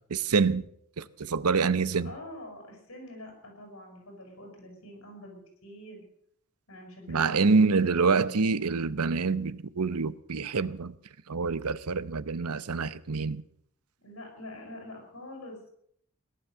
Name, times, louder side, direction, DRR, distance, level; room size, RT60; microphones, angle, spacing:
voice 1, 0.1-0.6 1.0-2.1 7.1-10.9 11.3-13.4, right 4 dB, 85° right, 0.8 m, -26 dB
voice 2, 2.0-6.0 6.7-8.4 14.0-15.7, left 1 dB, 65° left, 7.4 m, -45 dB
18.0 x 11.5 x 6.8 m
head